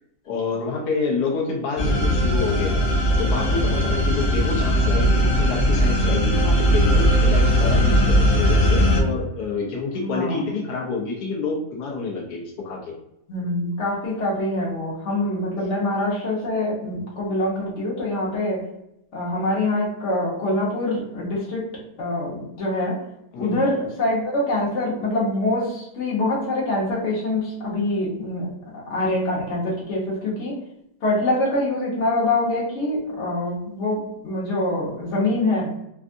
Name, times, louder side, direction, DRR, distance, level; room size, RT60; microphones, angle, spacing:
voice 1, 0.3-2.9 3.2-12.9 23.3-23.6, left 4 dB, 85° left, 0 dB, 1.2 m, -28 dB
sound 1, 1.8-9.0, equal, 65° left, 0.5 m, -19 dB
voice 2, 10.0-10.4 13.3-18.6 19.1-21.6 22.0-22.9 23.4-28.5 28.9-30.6 31.0-35.7, left 1 dB, 50° left, -5 dB, 1.3 m, -24 dB
3.4 x 2.5 x 2.5 m, 0.83 s
omnidirectional pair, 1.7 m